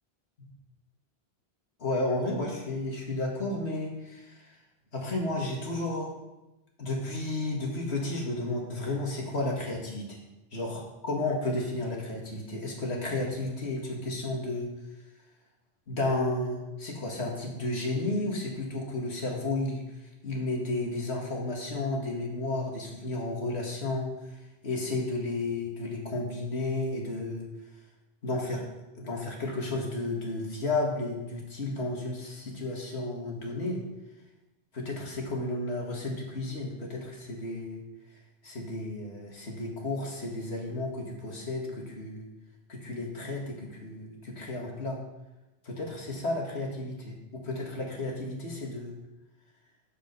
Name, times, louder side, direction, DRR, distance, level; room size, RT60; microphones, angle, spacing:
voice 1, 1.8-4.5 4.9-6.1 6.8-10.2 10.5-14.7 15.9-19.8 20.2-24.4 24.6-27.5 28.2-28.6 28.9-33.8 34.7-37.8 38.4-42.3 42.7-45.0 45.6-49.0, left 2 dB, 80° left, -1 dB, 2.3 m, -32 dB
14.0 x 5.1 x 5.4 m, 1.0 s
omnidirectional pair, 1.1 m